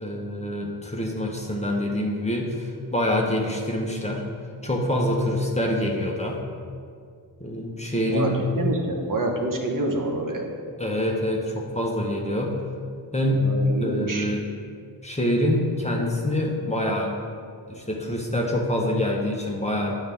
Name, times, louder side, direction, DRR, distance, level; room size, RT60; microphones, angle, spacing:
voice 1, 0.0-4.2 4.6-6.4 7.4-8.4 10.8-12.6 13.1-13.5 13.8-14.4 15.0-17.1 17.7-19.9, left 1 dB, 15° left, -1 dB, 1.1 m, -25 dB
voice 2, 8.1-10.5 13.4-14.3, right 2 dB, 45° right, 1 dB, 1.1 m, -27 dB
8.7 x 5.6 x 3.6 m, 2.1 s
cardioid pair, 60°, 43 cm